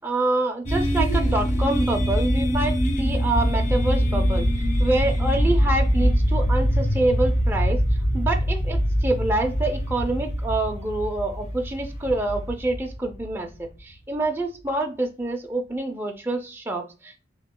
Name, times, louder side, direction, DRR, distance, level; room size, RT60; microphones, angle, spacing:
voice 1, 0.0-4.5 4.8-7.8 8.1-17.2, right 2 dB, 10° right, 2 dB, 0.3 m, -26 dB
sound 1, 0.7-13.6, equal, 35° left, 0.6 m, -23 dB
2.9 x 2.7 x 3.6 m, 0.34 s
head